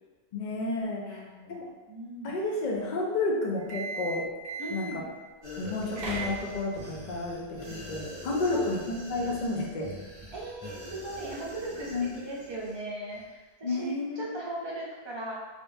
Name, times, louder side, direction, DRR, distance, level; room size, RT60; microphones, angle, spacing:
voice 1, 0.3-1.2 1.6-1.7 2.2-4.3 4.7-5.0 5.6-9.9 11.9-12.1 13.6-14.3, left 2 dB, 50° left, -1 dB, 0.6 m, -31 dB
voice 2, 1.0-1.6 1.9-2.4 4.6-5.0 7.6-7.7 8.4-8.7 9.1-9.3 10.3-15.3, right 1 dB, 30° right, -4 dB, 0.6 m, -38 dB
sound 1, 3.6-5.1 5.7-6.8, right 3 dB, 80° right, 1.0 m, -37 dB
sound 2, 5.4-12.8 13.1-13.2, left 1 dB, 35° left, 1.6 m, -44 dB
3.6 x 2.5 x 2.6 m, 1.3 s
omnidirectional pair, 1.1 m